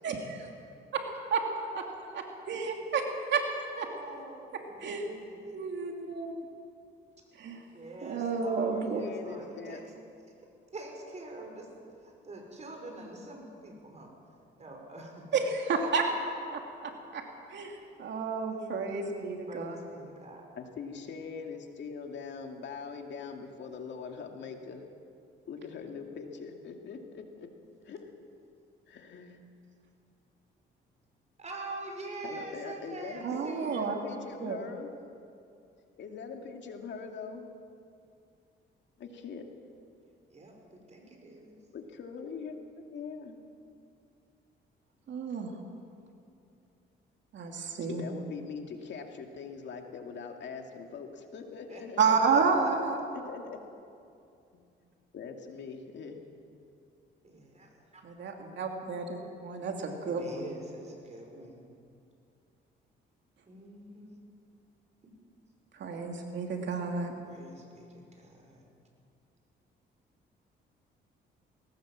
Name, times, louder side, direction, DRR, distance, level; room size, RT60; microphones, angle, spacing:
voice 1, 0.0-0.5 0.9-1.0 1.3-1.4 1.7-1.8 2.1-3.0 3.3-3.4 3.8-3.9 4.8-5.1 5.4-6.3 7.3-7.6 8.0-9.0 15.3-17.2 17.5-19.8 33.2-34.0 34.4-34.6 45.1-45.5 47.3-48.0 52.0-53.0 58.0-60.4 65.7-67.1, right 5 dB, 65° right, 2 dB, 2.8 m, -31 dB
voice 2, 3.8-5.4 7.7-9.9 10.7-11.7 12.0-14.1 14.6-15.3 18.5-20.4 31.4-33.9 40.3-41.6 51.7-52.1 57.2-58.0 60.0-61.7 63.5-64.2 67.2-67.9 68.2-68.6, right 2 dB, 35° right, 1 dB, 5.7 m, -45 dB
voice 3, 8.9-9.8 20.6-24.9 25.5-27.5 27.8-28.1 28.9-29.4 32.2-34.9 36.0-37.5 39.0-39.5 41.7-43.4 47.9-52.2 53.2-53.6 54.5-54.7 55.1-56.2, left 5 dB, 65° left, 3 dB, 2.4 m, -42 dB
20.0 x 18.5 x 7.5 m, 2.5 s
cardioid pair, 90°, 20 cm